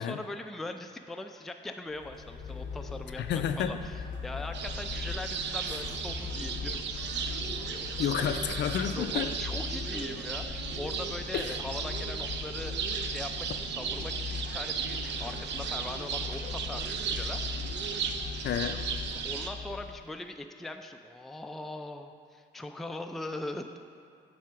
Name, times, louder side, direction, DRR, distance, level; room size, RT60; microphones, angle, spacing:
voice 1, 0.0-6.8 7.8-8.4 8.9-12.7 13.1-17.4 19.2-23.8, left 2 dB, ahead, 5 dB, 0.3 m, -41 dB
sound 1, 1.9-20.1, left 5 dB, 90° left, 1.0 m, -39 dB
voice 2, 3.2-3.8 5.7-5.8 8.0-9.3 11.3-11.6 18.4-18.8, left 8 dB, 60° left, 8 dB, 0.5 m, -30 dB
sound 2, 4.5-19.5, right 6 dB, 65° right, 0.5 m, -36 dB
7.4 x 3.4 x 6.0 m, 2.5 s
cardioid pair, 90°, 20 cm